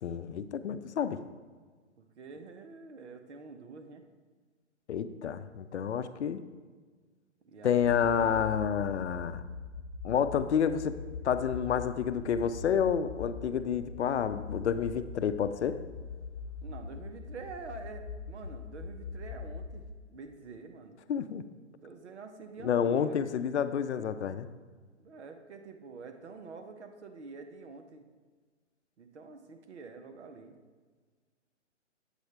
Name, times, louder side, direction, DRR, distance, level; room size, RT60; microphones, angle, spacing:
voice 1, 0.0-1.2 4.9-6.4 7.6-9.4 10.0-11.0 11.2-15.8 21.1-21.4 22.6-24.5, left 8 dB, 65° left, 12 dB, 0.6 m, -29 dB
voice 2, 2.0-4.0 7.4-8.4 16.6-19.8 20.1-21.0 21.8-23.2 25.0-28.1 29.0-30.6, right 4 dB, 65° right, 6 dB, 1.0 m, -47 dB
sound 1, 7.8-19.8, left 4 dB, 25° left, 1.7 m, -42 dB
8.2 x 7.8 x 3.4 m, 1.5 s
hypercardioid pair, 140°, 36 cm